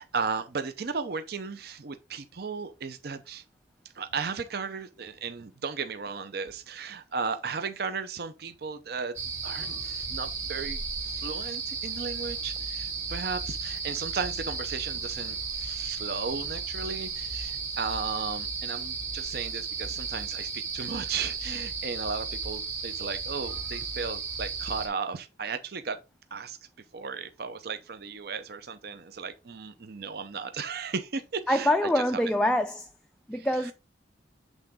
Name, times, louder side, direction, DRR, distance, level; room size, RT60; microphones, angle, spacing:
voice 1, 0.0-3.4 3.9-9.1 9.4-26.0 26.3-26.6 26.9-32.2 33.3-33.7, right 5 dB, 60° right, 0.6 m, -35 dB
sound 1, 9.2-24.9, right 5 dB, 40° right, 2.1 m, -34 dB
voice 2, 31.5-32.9 33.3-33.7, left 1 dB, 5° left, 0.3 m, -25 dB
8.1 x 3.8 x 3.5 m
head